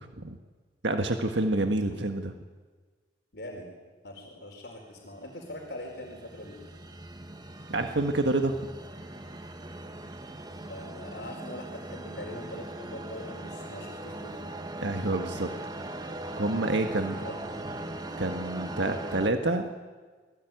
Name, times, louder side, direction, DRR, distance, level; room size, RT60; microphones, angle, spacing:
voice 1, 0.8-2.3 7.7-8.6 14.8-15.5 16.4-17.1 18.2-19.7, right 2 dB, 75° right, 5 dB, 1.6 m, -28 dB
voice 2, 3.3-3.7 4.0-6.6 10.7-14.4 16.7-16.9 17.2-17.5 18.1-18.2, left 1 dB, 60° left, 0 dB, 4.6 m, -42 dB
sound 1, 5.2-19.3, right 1 dB, 20° right, 1.3 m, -40 dB
27.5 x 19.5 x 9.3 m, 1.4 s
head